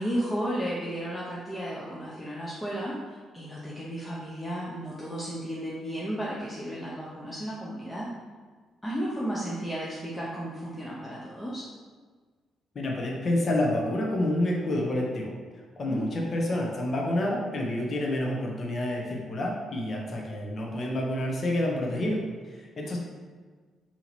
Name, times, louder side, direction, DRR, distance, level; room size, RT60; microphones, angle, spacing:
voice 1, 0.0-8.1 8.8-11.6 15.9-16.1 22.8-23.0, equal, 10° left, -7 dB, 0.6 m, -33 dB
voice 2, 12.7-23.0, left 1 dB, 45° left, -1 dB, 0.8 m, -29 dB
2.9 x 2.8 x 4.0 m, 1.5 s
cardioid pair, 90°, 0 cm